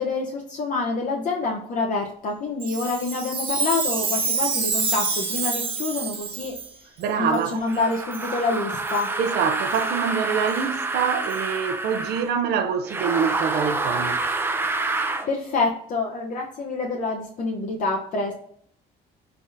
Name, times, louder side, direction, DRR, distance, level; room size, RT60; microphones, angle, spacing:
voice 1, 0.0-6.6 7.2-9.1 15.0-18.3, left 3 dB, 50° left, 0.7 m, -27 dB
Chime, 2.6-6.7 7.3-7.4 8.1-8.3 8.9-9.1 9.7-9.8 10.5-10.6 11.3-11.4, right 4 dB, 30° right, 0.9 m, -27 dB
voice 2, 7.0-7.6 9.2-14.2, right 7 dB, 75° right, 0.5 m, -25 dB
sound 1, 7.7-12.3 12.8-15.3, right 3 dB, 15° right, 0.4 m, -27 dB
3.6 x 3.4 x 2.6 m
cardioid pair, 110°, 17 cm